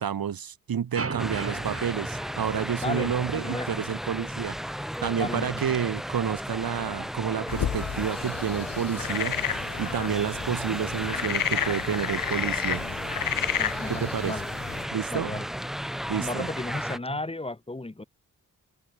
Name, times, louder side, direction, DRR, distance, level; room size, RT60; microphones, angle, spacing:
voice 1, 0.0-4.6 5.0-9.4 9.8-12.8 13.9-14.4 14.9-15.4 16.1-16.5, right 8 dB, 80° right, 2.4 m, -29 dB
sound 1, 0.9-3.2, right 4 dB, 40° right, 5.7 m, -36 dB
sound 2, 1.2-17.0, equal, ahead, 0.9 m, -34 dB
voice 2, 2.8-3.7 5.2-5.6 13.6-14.5 15.1-15.5 16.2-18.0, left 2 dB, 15° left, 4.6 m, -34 dB
sound 3, 7.5-14.8, left 9 dB, 70° left, 1.2 m, -31 dB
wide cardioid pair, 150°, 35 cm